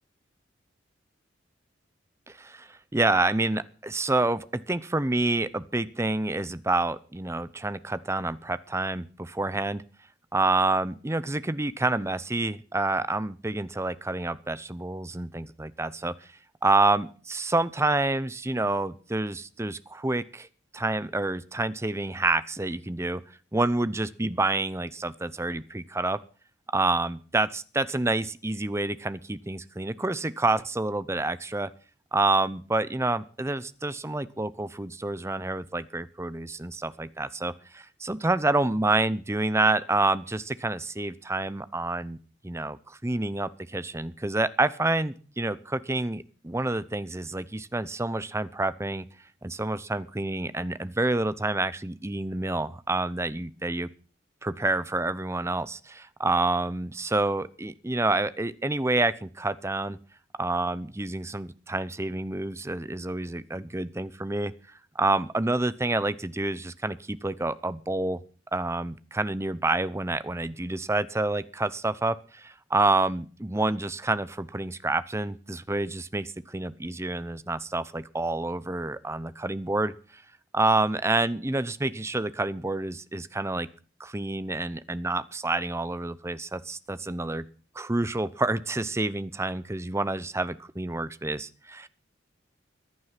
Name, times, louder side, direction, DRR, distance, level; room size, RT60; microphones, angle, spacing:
voice 1, 2.3-9.8 10.3-16.1 16.6-20.5 20.7-23.2 23.5-26.2 26.7-31.7 32.1-42.2 42.4-49.1 49.4-53.9 54.4-60.0 60.4-64.5 64.9-68.2 68.5-79.9 80.5-83.7 84.0-87.4 87.7-91.9, right 2 dB, 15° right, 16 dB, 0.7 m, -28 dB
15.5 x 11.0 x 5.9 m, 0.39 s
head